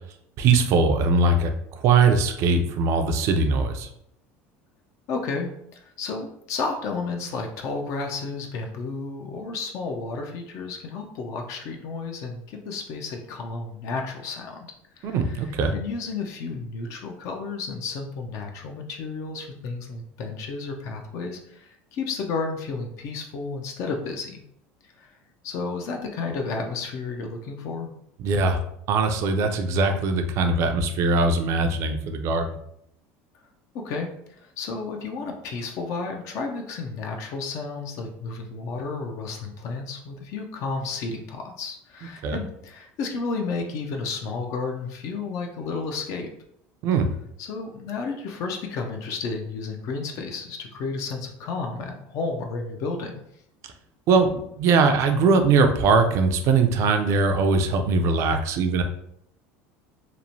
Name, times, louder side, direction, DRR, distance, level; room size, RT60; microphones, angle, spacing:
voice 1, 0.4-1.5 1.8-3.9 15.0-15.7 28.2-28.6 28.9-32.6 42.2-42.4 46.8-47.1 54.1-58.8, right 4 dB, 55° right, 6 dB, 0.4 m, -21 dB
voice 2, 5.1-14.6 15.0-24.4 25.0-25.1 25.4-27.9 33.7-34.1 34.4-46.3 47.4-53.2, left 4 dB, 55° left, 3 dB, 0.4 m, -32 dB
2.9 x 2.1 x 2.6 m, 0.73 s
supercardioid pair, 115°, 6 cm